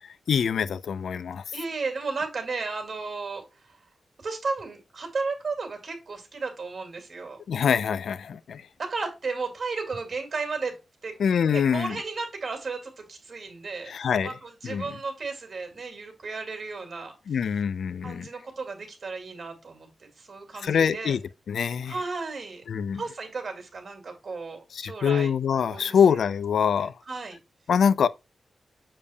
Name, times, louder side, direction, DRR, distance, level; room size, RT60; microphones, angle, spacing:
voice 1, 0.0-1.4 7.5-8.6 11.2-12.0 13.9-14.3 14.6-14.8 17.3-18.3 20.6-21.2 21.5-22.0 22.7-23.0 24.7-26.9 27.7-28.1, left 7 dB, 80° left, 0.4 m, -24 dB
voice 2, 1.5-3.8 4.2-7.4 8.8-11.2 11.4-13.9 14.2-17.2 18.0-19.9 20.2-21.2 21.8-22.6 22.9-25.3 25.7-26.2 26.8-27.4, right 4 dB, 45° right, 2.3 m, -34 dB
7.2 x 6.8 x 2.2 m
wide cardioid pair, 115°, 0 cm